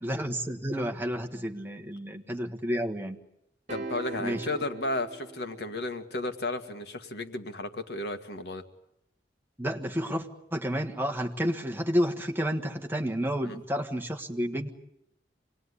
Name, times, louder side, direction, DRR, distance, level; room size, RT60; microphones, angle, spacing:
voice 1, 0.0-3.2 4.2-4.4 9.6-14.7, equal, 10° right, 2 dB, 1.6 m, -30 dB
voice 2, 3.7-8.6 13.4-13.6, left 2 dB, 70° left, 7 dB, 1.9 m, -33 dB
sound 1, 3.7-6.1, right 3 dB, 40° right, 2.5 m, -40 dB
26.5 x 20.0 x 9.8 m, 0.83 s
head